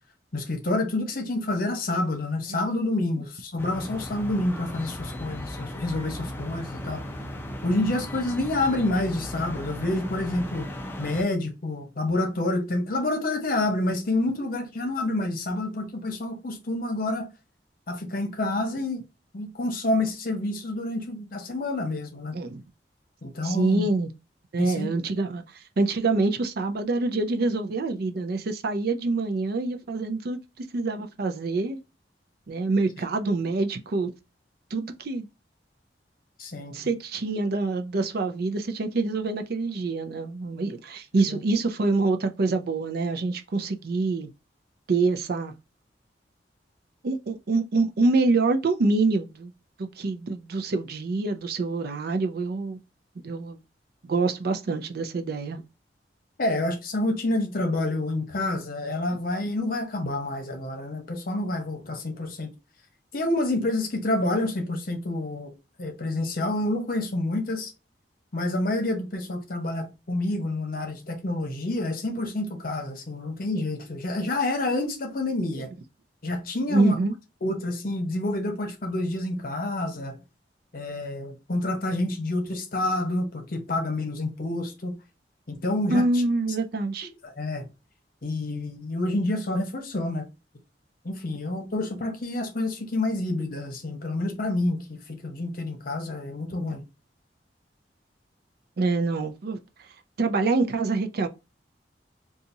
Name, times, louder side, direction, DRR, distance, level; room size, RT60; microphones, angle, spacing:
voice 1, 0.3-7.0 7.6-17.3 17.9-19.0 19.3-22.3 23.2-23.9 24.6-24.9 36.4-36.7 41.3-41.4 56.4-62.5 63.1-65.5 65.8-67.7 68.3-75.7 76.2-77.0 77.4-80.2 80.7-85.0 85.5-86.0 87.2-87.7 88.2-90.3 91.0-96.8, left 2 dB, 55° left, 0.9 m, -28 dB
sound 1, 3.6-11.2, equal, 15° left, 0.5 m, -36 dB
voice 2, 23.4-24.1 24.5-25.4 25.8-31.8 32.5-34.1 34.7-35.3 36.7-44.3 44.9-45.5 47.0-49.5 49.8-52.8 53.2-53.6 54.0-55.6 76.7-77.1 85.9-87.1 98.8-99.6 100.2-101.3, right 3 dB, 60° right, 0.5 m, -26 dB
4.0 x 2.4 x 2.7 m
head